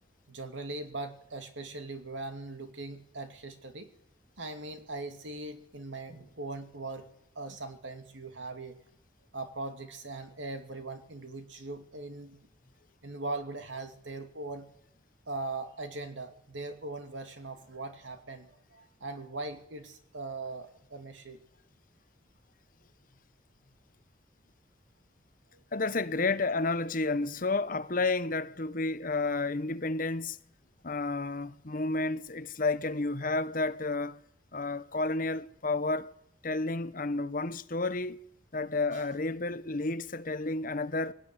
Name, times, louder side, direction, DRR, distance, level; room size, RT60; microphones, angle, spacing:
voice 1, 0.3-3.9 4.4-7.1 7.3-8.8 9.3-12.4 13.0-14.7 15.3-21.4 31.1-31.2 38.9-39.0, right 2 dB, 80° right, 2.8 m, -40 dB
voice 2, 25.7-30.4 30.8-34.2 34.5-36.1 36.4-38.2 38.5-41.1, left 3 dB, 45° left, 1.0 m, -31 dB
21.0 x 18.0 x 9.8 m
head